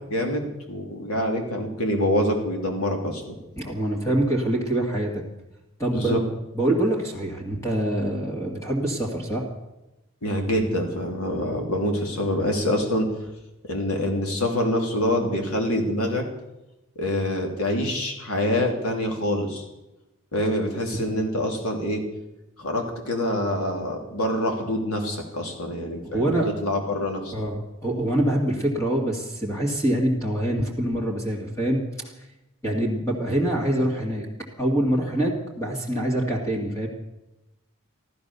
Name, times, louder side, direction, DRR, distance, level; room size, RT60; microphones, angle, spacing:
voice 1, 0.1-3.3 5.9-6.2 10.2-13.1 13.7-16.2 17.0-19.6 20.3-22.0 22.6-27.3, left 1 dB, 80° left, 2 dB, 3.1 m, -26 dB
voice 2, 3.6-5.2 5.8-6.2 6.5-9.4 26.0-26.5 27.3-31.8 32.6-34.3 34.6-36.9, right 1 dB, 15° left, -2 dB, 2.1 m, -25 dB
14.5 x 12.5 x 6.8 m, 0.97 s
head